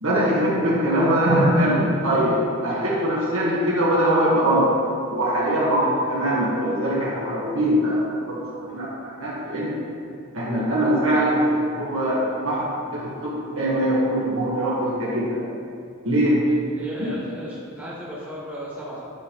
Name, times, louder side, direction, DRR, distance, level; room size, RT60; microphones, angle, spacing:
voice 1, 0.0-4.8 5.1-9.8 10.3-15.4 16.0-16.4, right 1 dB, 70° right, -6 dB, 1.8 m, -22 dB
voice 2, 16.8-19.1, equal, 10° right, -8 dB, 1.7 m, -35 dB
10.0 x 3.6 x 5.1 m, 2.4 s
head